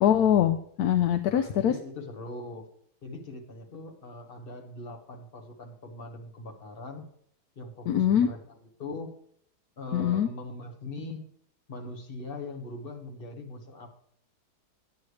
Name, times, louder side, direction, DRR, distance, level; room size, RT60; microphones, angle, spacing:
voice 1, 0.0-1.7 7.9-8.3 9.9-10.3, left 10 dB, 70° left, 8 dB, 1.1 m, -23 dB
voice 2, 1.2-2.7 3.0-7.1 7.5-9.1 9.8-11.3 11.7-14.0, left 2 dB, 35° left, 3 dB, 1.5 m, -41 dB
9.9 x 9.6 x 3.2 m, 0.66 s
omnidirectional pair, 1.8 m